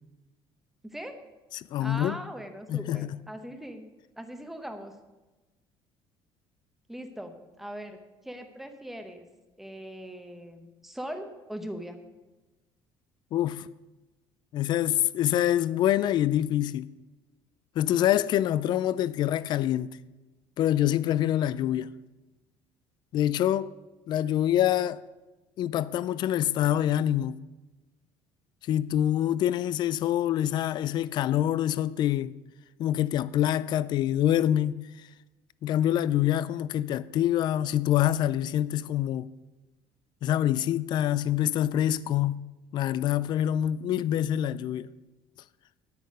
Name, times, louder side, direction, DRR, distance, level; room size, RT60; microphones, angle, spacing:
voice 1, 0.8-1.2 1.8-3.9 4.2-4.9 6.9-9.3 9.6-12.0, equal, ahead, 0.8 m, -40 dB
voice 2, 1.7-2.1 2.7-3.1 13.3-13.7 14.5-16.9 17.8-20.0 20.6-21.9 23.1-23.7 24.1-25.0 25.6-27.4 28.7-32.4 32.8-34.9 35.6-39.3 40.2-42.4 42.7-44.9, left 12 dB, 45° left, 0.3 m, -26 dB
9.4 x 9.3 x 5.1 m
cardioid pair, 165°, 11 cm